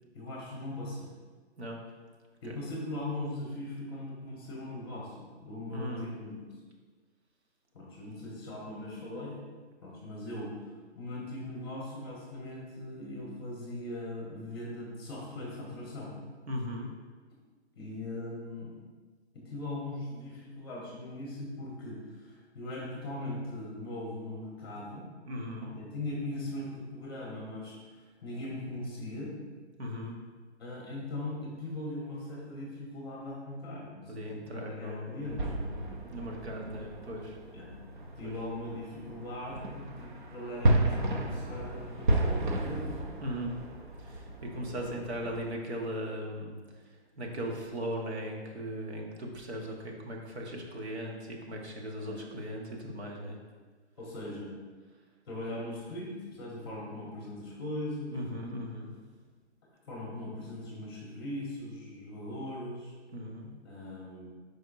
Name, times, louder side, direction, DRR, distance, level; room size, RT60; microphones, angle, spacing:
voice 1, 0.1-1.1 2.4-6.5 7.7-9.4 9.8-10.6 10.9-16.1 17.7-18.7 19.3-25.1 25.6-29.3 30.6-35.8 37.5-37.7 38.2-42.9 52.0-52.2 54.0-54.5 55.3-58.2 59.8-62.9 63.6-64.3, left 1 dB, 20° left, -4 dB, 1.3 m, -40 dB
voice 2, 5.7-6.1 16.5-16.9 25.3-25.7 29.8-30.2 34.1-35.5 36.1-37.4 38.2-38.3 43.2-43.6 44.0-46.6 47.2-53.4 58.1-58.9 63.1-63.5, equal, 70° right, 0 dB, 1.5 m, -38 dB
sound 1, 35.2-45.5, right 1 dB, 45° right, 0.7 m, -33 dB
9.3 x 5.0 x 2.7 m, 1.4 s
hypercardioid pair, 180°, 34 cm